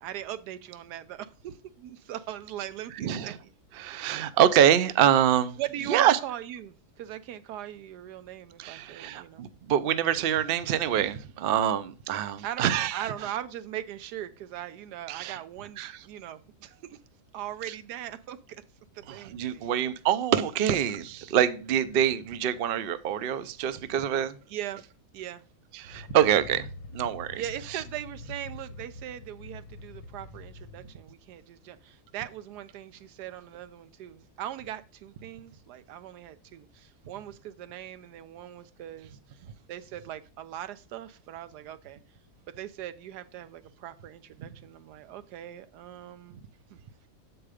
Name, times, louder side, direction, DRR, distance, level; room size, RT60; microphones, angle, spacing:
voice 1, 0.0-3.5 3.8-4.1 5.6-9.4 12.4-17.0 17.3-18.6 18.9-19.7 24.5-24.9 25.1-25.5 27.3-39.4 39.7-42.0 42.5-46.4 46.7-46.8, right 12 dB, 90° right, 1.2 m, -40 dB
voice 2, 2.9-3.4 3.8-5.6 5.9-6.2 8.6-13.1 15.1-15.4 15.8-16.0 19.1-24.4 25.7-26.7 26.9-27.4 27.7-27.8 44.4-44.5, right 10 dB, 70° right, 0.5 m, -25 dB
sound 1, 25.9-30.9, left 2 dB, 70° left, 1.1 m, -45 dB
7.5 x 4.7 x 4.9 m
omnidirectional pair, 1.7 m